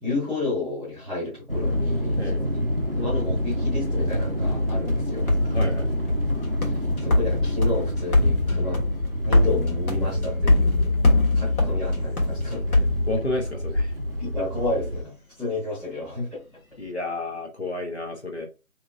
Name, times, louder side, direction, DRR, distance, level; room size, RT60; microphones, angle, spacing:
voice 1, 0.0-2.5 2.9-5.3 6.6-8.9 9.2-10.9 11.3-12.9 14.2-16.4, left 2 dB, ahead, 1.0 m, -31 dB
sound 1, 1.5-15.0, equal, 45° right, 0.5 m, -28 dB
sound 2, 4.9-13.7, left 2 dB, 85° left, 1.3 m, -24 dB
voice 2, 5.5-5.9 13.1-13.9 16.8-18.5, left 2 dB, 50° left, 0.7 m, -30 dB
3.7 x 2.9 x 2.3 m
figure-of-eight pair, 175°, 42 cm